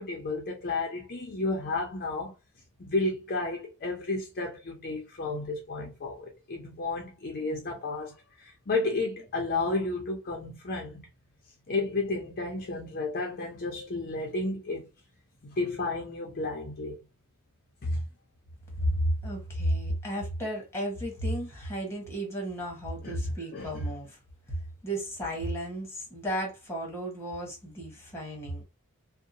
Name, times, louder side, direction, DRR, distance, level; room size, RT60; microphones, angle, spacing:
voice 1, 0.0-2.3 2.8-11.1 11.7-14.9 15.4-17.0 17.8-18.0 23.0-23.1 23.5-23.8, left 2 dB, 45° left, 0.6 m, -32 dB
voice 2, 18.8-24.2 24.5-28.6, equal, 10° left, 1.1 m, -33 dB
2.7 x 2.1 x 2.6 m
head